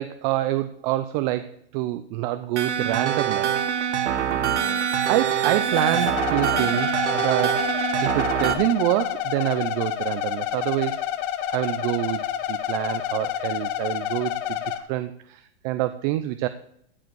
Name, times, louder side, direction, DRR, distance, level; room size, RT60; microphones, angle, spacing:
voice 1, 0.0-4.6 5.1-7.7 8.0-11.1 11.5-14.6 14.9-16.5, right 15 dB, 40° right, 11 dB, 0.7 m, -27 dB
sound 1, 2.6-8.5, right 9 dB, 90° right, 1.6 m, -24 dB
sound 2, 5.7-14.8, left 11 dB, 50° left, 1.3 m, -29 dB
14.5 x 5.0 x 7.8 m, 0.69 s
hypercardioid pair, 135°, 34 cm